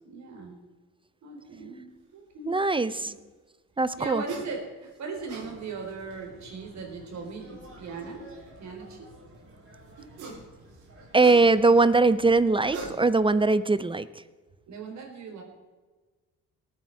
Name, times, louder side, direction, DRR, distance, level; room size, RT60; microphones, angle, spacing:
voice 1, 0.1-0.6 1.2-2.6 2.9-3.1 4.0-8.2 8.6-9.1 14.7-15.4, right 4 dB, 65° right, 2 dB, 4.1 m, -38 dB
voice 2, 2.5-3.1 3.8-4.2 11.1-14.1, right 3 dB, 15° right, 16 dB, 0.5 m, -21 dB
sound 1, 4.3-4.5 5.0-5.5 6.9-7.0 10.0-10.5 10.8-11.8 12.5-13.3, right 3 dB, 85° right, 4.3 m, -40 dB
sound 2, 5.3-13.1, right 1 dB, 45° right, 4.7 m, -52 dB
19.0 x 9.0 x 4.7 m, 1.3 s
cardioid pair, 90°, 30 cm